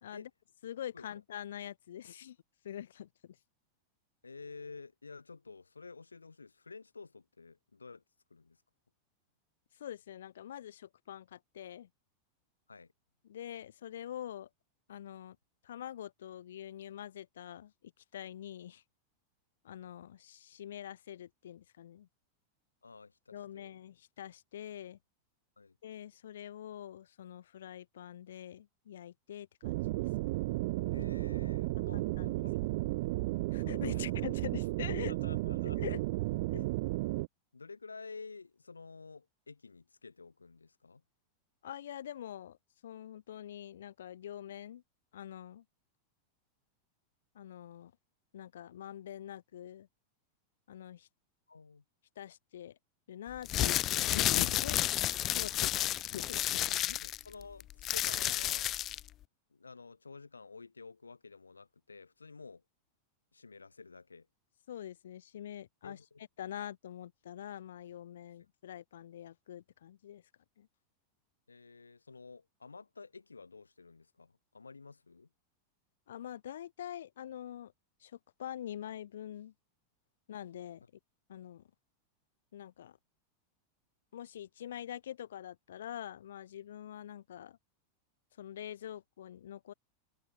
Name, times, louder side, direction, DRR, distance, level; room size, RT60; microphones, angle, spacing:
voice 1, 0.6-2.4 2.6-3.4 9.8-11.9 13.2-14.5 14.9-15.4 15.6-18.8 19.6-22.1 23.3-25.0 25.8-29.7 31.9-32.4 33.5-35.1 35.8-36.0 36.5-36.7 41.6-42.6 42.8-44.8 45.1-45.6 47.3-47.9 48.3-49.9 50.7-51.1 52.2-52.8 53.1-54.8 55.3-55.7 56.1-57.0 64.7-66.0 66.4-70.2 70.6-70.7 76.1-77.7 78.0-79.5 80.3-80.8 81.3-81.6 82.5-83.0 84.1-87.6 88.4-89.7, left 10 dB, 60° left, 1.9 m, -45 dB
voice 2, 4.2-8.0 8.3-8.6 12.7-12.9 22.8-23.8 25.6-25.8 30.9-32.9 33.9-34.2 35.1-35.9 37.5-41.0 51.5-51.8 55.7-55.9 56.8-58.8 59.5-62.6 63.3-64.3 65.8-66.2 71.5-75.3, left 4 dB, 75° left, 5.2 m, -51 dB
sound 1, 29.6-37.3, right 21 dB, 50° right, 0.5 m, -33 dB
sound 2, 53.4-59.1, left 13 dB, 35° left, 0.5 m, -31 dB
figure-of-eight pair, 90°, 0 cm